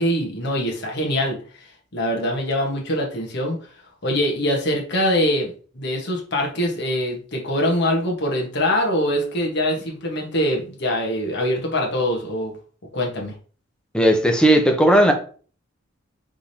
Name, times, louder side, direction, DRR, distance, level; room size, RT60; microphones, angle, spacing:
voice 1, 0.0-1.4 1.9-3.6 4.0-12.6 12.9-13.3, equal, 60° left, 1.3 m, -23 dB
voice 2, 13.9-15.1, right 1 dB, 5° left, 0.8 m, -15 dB
4.9 x 3.6 x 2.8 m
head